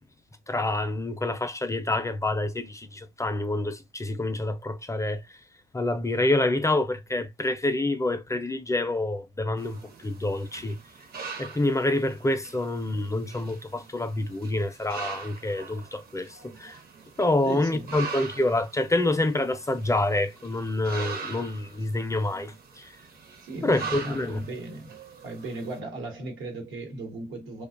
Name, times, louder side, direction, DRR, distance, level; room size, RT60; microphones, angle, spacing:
voice 1, 0.5-5.2 5.7-10.8 11.4-16.8 17.2-23.0 23.6-24.4, left 2 dB, 15° left, 0.4 m, -27 dB
sound 1, 9.6-25.8, right 5 dB, 50° right, 0.8 m, -42 dB
voice 2, 17.4-18.0 23.4-24.9 25.2-27.7, right 2 dB, 85° right, 1.1 m, -37 dB
2.5 x 2.2 x 2.4 m
cardioid pair, 90°, 20 cm